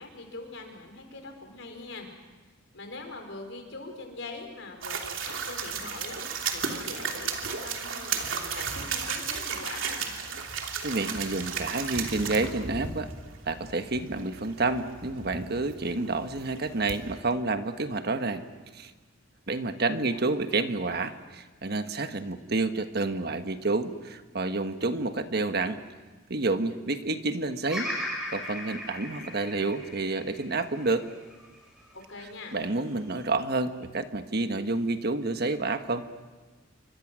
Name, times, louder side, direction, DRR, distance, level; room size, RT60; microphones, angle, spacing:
voice 1, 0.0-2.1 2.7-6.2 6.5-10.1 19.9-20.2 31.9-32.6, left 3 dB, 65° left, 4 dB, 5.1 m, -42 dB
sound 1, 4.8-17.2, right 6 dB, 70° right, 3.1 m, -34 dB
voice 2, 10.8-13.1 13.5-18.5 18.7-18.9 19.5-25.8 26.3-27.9 28.3-31.0 32.5-36.1, right 3 dB, 50° right, 8 dB, 1.3 m, -29 dB
Bird vocalization bird call bird song, 27.7-31.9 32.5-33.2, left 1 dB, 5° right, 7.0 m, -37 dB
29.0 x 24.5 x 6.3 m, 1.3 s
head